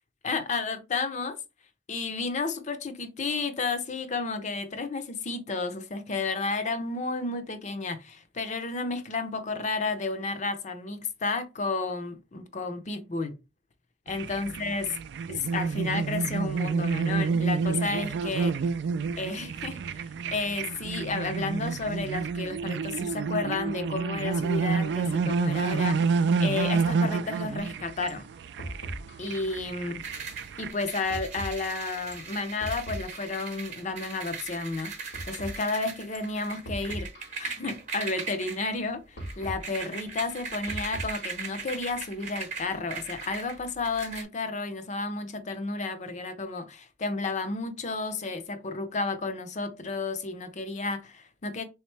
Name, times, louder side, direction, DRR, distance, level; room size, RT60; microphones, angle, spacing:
voice 1, 0.2-1.4 1.9-13.4 14.1-14.9 15.3-18.5 19.2-19.8 20.3-28.3 29.2-30.0 30.6-37.1 37.4-51.6, left 3 dB, 40° left, 0.6 m, -32 dB
sound 1, 14.1-30.7, right 5 dB, 65° right, 0.3 m, -29 dB
sound 2, 27.6-27.7 28.1-28.3 28.6-29.3 30.1-30.3 31.1-31.7 32.1-33.5 34.1-34.3 35.1-35.7 36.1-36.3 36.6-37.5 38.2-38.4 39.2-39.7 40.2-41.5 42.2-42.4 43.2-43.6, right 1 dB, 90° left, 1.7 m, -40 dB
sound 3, 30.0-44.2, right 5 dB, 45° right, 0.8 m, -39 dB
3.6 x 3.2 x 3.2 m
head